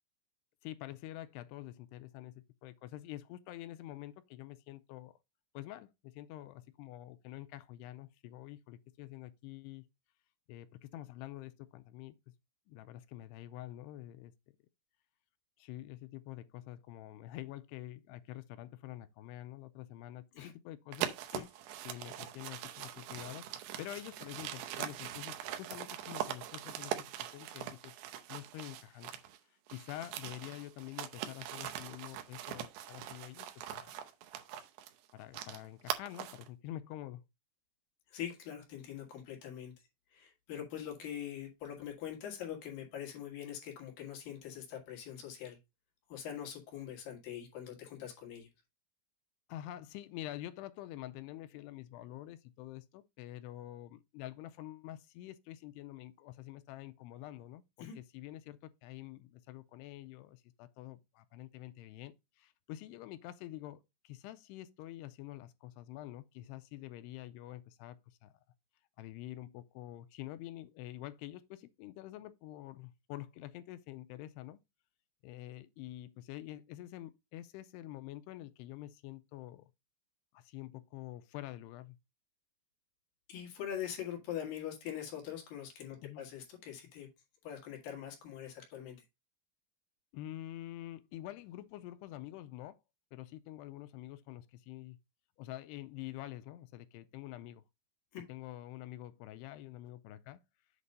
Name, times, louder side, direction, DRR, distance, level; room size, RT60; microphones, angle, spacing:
voice 1, 0.6-5.2 5.5-9.8 10.5-12.2 12.7-14.3 15.6-21.1 21.9-27.9 28.3-29.2 29.5-33.5 33.7-34.1 35.1-37.2 49.5-68.3 69.0-74.6 75.2-79.7 80.3-82.0 86.0-86.2 90.1-92.8 93.1-95.0 95.4-97.6 98.3-100.4, left 14 dB, 85° left, 2.6 m, -47 dB
sound 1, 20.9-29.4 29.7-36.5, right 11 dB, 85° right, 2.9 m, -42 dB
voice 2, 38.1-39.7 40.1-45.6 46.1-48.5 57.8-58.0 83.3-87.1 87.4-89.0 98.1-98.2, left 10 dB, 65° left, 3.2 m, -43 dB
8.1 x 3.0 x 5.3 m
omnidirectional pair, 4.7 m